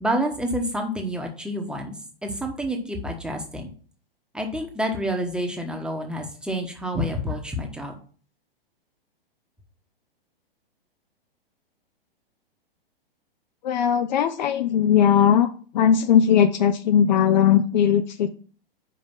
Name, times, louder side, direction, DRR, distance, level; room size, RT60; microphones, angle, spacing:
voice 1, 0.0-3.7 4.3-7.9, equal, 5° right, 2 dB, 1.1 m, -28 dB
voice 2, 13.6-15.5 15.7-18.3, left 8 dB, 50° left, 10 dB, 0.6 m, -19 dB
5.5 x 5.0 x 5.6 m, 0.42 s
figure-of-eight pair, 115°, 30 cm